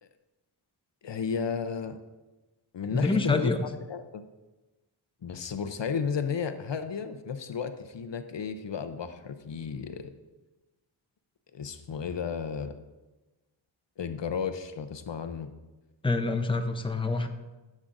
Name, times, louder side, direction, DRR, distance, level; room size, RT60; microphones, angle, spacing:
voice 1, 1.0-2.0 2.7-3.5 3.9-4.2 5.2-10.1 11.5-12.7 14.0-15.5, left 6 dB, 65° left, 8 dB, 0.7 m, -33 dB
voice 2, 2.9-3.6 16.0-17.3, left 3 dB, 10° left, 6 dB, 0.7 m, -26 dB
14.0 x 7.4 x 2.6 m, 1.1 s
wide cardioid pair, 70°, 48 cm